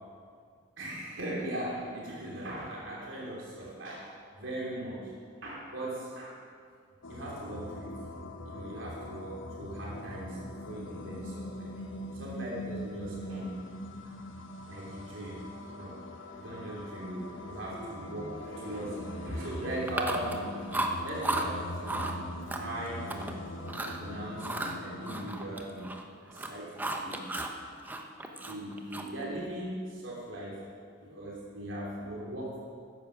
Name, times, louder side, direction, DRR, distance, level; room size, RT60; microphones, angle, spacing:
voice 1, 0.8-5.1 5.4-6.4 7.1-8.0 8.4-10.4 10.7-11.9 12.1-13.7 14.0-14.1 14.7-15.5 15.7-16.0 16.3-20.6 21.0-22.1 22.6-23.4 24.0-27.4 28.4-30.6 31.0-32.6, right 1 dB, 85° right, -5 dB, 3.0 m, -39 dB
sound 1, 7.0-25.3, left 1 dB, 85° left, 1.2 m, -42 dB
Chewing mastication, 19.9-20.4 20.7-21.5 21.8-22.1 22.5-23.3 23.7-24.0 24.4-26.0 26.3-27.6 27.8-29.2, right 2 dB, 10° right, 0.8 m, -34 dB
14.0 x 10.0 x 6.2 m, 2.2 s
head